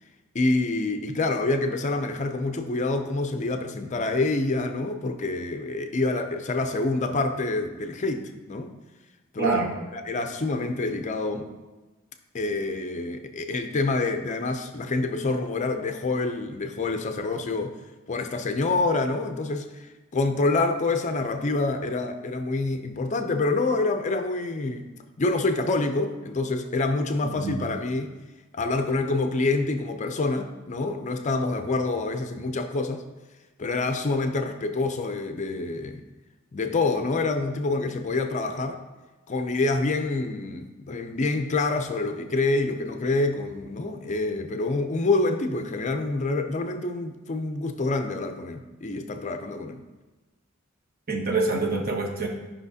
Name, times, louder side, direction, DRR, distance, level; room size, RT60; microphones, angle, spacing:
voice 1, 0.3-8.7 9.3-9.5 9.9-11.5 12.3-17.7 18.1-24.9 25.2-28.1 28.5-33.0 33.6-36.0 36.5-38.8 39.3-49.8, left 3 dB, 35° left, 7 dB, 0.5 m, -27 dB
voice 2, 9.4-9.7 27.4-27.6 51.1-52.3, right 3 dB, 50° right, 1 dB, 1.0 m, -25 dB
10.5 x 5.6 x 2.7 m, 1.1 s
head